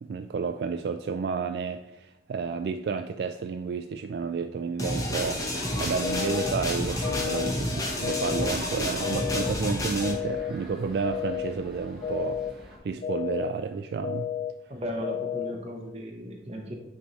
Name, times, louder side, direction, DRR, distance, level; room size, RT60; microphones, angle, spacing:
voice 1, 0.0-14.3, right 5 dB, 65° right, 7 dB, 0.3 m, -31 dB
sound 1, 4.8-10.1, left 1 dB, 20° left, 1.0 m, -30 dB
sound 2, 4.9-12.8, equal, ahead, 1.4 m, -46 dB
sound 3, 6.0-6.5 7.0-7.5 8.0-8.5 9.0-9.5 10.0-10.5 11.0-11.5 12.0-12.5 13.0-13.5 14.0-14.5 15.0-15.5, left 10 dB, 50° left, 0.3 m, -31 dB
voice 2, 14.7-16.7, equal, 35° right, 1 dB, 1.1 m, -36 dB
8.7 x 3.3 x 4.0 m, 0.91 s
head